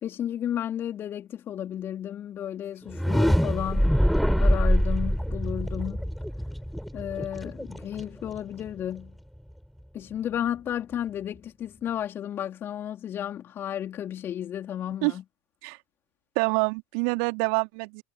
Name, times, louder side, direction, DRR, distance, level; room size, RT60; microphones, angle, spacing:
voice 1, 0.0-4.0 4.4-6.1 6.9-9.2 9.9-15.2, left 10 dB, 35° left, 4.4 m, -33 dB
sound 1, 2.8-8.7, equal, ahead, 7.2 m, -24 dB
voice 2, 16.4-18.0, right 38 dB, 55° right, 3.5 m, -26 dB
figure-of-eight pair, 80°, 7 cm